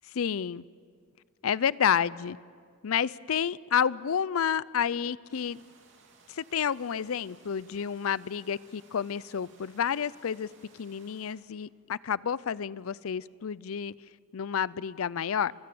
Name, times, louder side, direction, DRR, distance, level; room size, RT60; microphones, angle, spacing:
voice 1, 0.1-0.6 1.4-2.4 2.8-5.6 6.3-10.5 10.7-13.9 14.3-15.5, left 8 dB, 80° left, 21 dB, 0.5 m, -30 dB
sound 1, 5.3-11.3, right 4 dB, 60° right, 3.1 m, -60 dB
28.0 x 16.5 x 7.7 m, 2.1 s
head